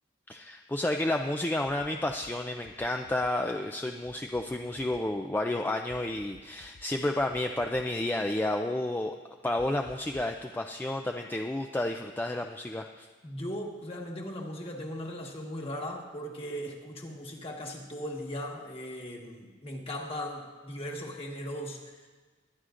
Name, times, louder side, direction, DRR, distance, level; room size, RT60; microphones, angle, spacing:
voice 1, 0.3-9.1 9.4-13.1, left 1 dB, 10° left, 4 dB, 0.4 m, -31 dB
sound 1, 1.8-2.3 2.6-3.3 4.1-5.0 5.9-6.8 7.2-7.8 9.6-10.4, left 3 dB, 50° left, 0.6 m, -53 dB
voice 2, 13.2-22.1, equal, 35° left, 0 dB, 1.5 m, -38 dB
21.0 x 10.5 x 2.5 m, 1.4 s
head